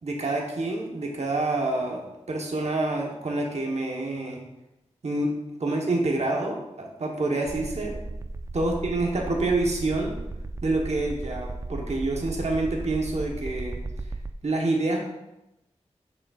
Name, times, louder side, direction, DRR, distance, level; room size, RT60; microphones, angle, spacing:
voice 1, 0.0-4.4 5.0-5.3 5.6-8.0 8.5-10.1 10.6-13.8 14.4-15.0, right 2 dB, 65° right, 0 dB, 1.1 m, -27 dB
sound 1, 7.5-14.3, right 2 dB, 25° right, 0.3 m, -35 dB
7.7 x 6.1 x 2.4 m, 0.92 s
cardioid pair, 45°, 12 cm